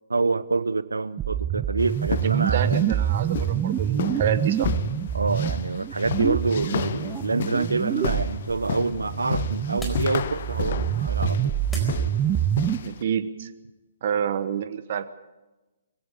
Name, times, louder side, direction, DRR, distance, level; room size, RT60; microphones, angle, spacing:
voice 1, 0.1-2.9 5.1-11.5, right 3 dB, 75° right, 17 dB, 0.8 m, -26 dB
sound 1, 1.2-12.8, right 10 dB, 15° right, 0.6 m, -26 dB
sound 2, 1.8-13.0, left 8 dB, 50° left, 0.9 m, -33 dB
voice 2, 2.2-4.7 12.8-13.5 14.0-15.0, right 8 dB, 45° right, 13 dB, 1.2 m, -28 dB
sound 3, 6.5-12.6, equal, 5° left, 4.3 m, -45 dB
21.5 x 16.5 x 8.5 m, 1.1 s
figure-of-eight pair, 130°, 0 cm